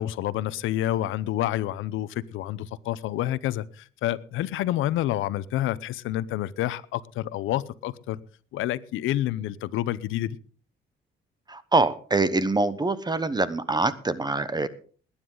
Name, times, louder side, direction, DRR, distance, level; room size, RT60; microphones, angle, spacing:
voice 1, 0.0-8.2 8.5-10.4, left 13 dB, 90° left, 0.7 m, -28 dB
voice 2, 11.5-14.7, right 3 dB, 20° right, 1.0 m, -24 dB
20.5 x 9.9 x 3.9 m
cardioid pair, 90°, 20 cm